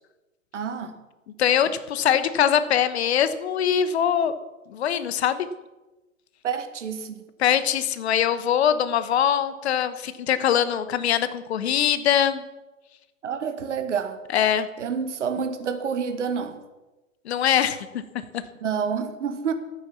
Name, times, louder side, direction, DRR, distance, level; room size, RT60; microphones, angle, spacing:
voice 1, 0.5-1.0 6.4-7.3 13.2-14.2 14.8-16.6 18.6-19.5, right 6 dB, 60° right, 9 dB, 1.8 m, -28 dB
voice 2, 1.4-4.3 4.7-5.5 7.4-12.4 14.3-14.7 17.2-18.0 18.3-18.4, left 9 dB, 50° left, 13 dB, 1.1 m, -22 dB
13.0 x 9.1 x 7.2 m, 1.1 s
figure-of-eight pair, 110°, 40 cm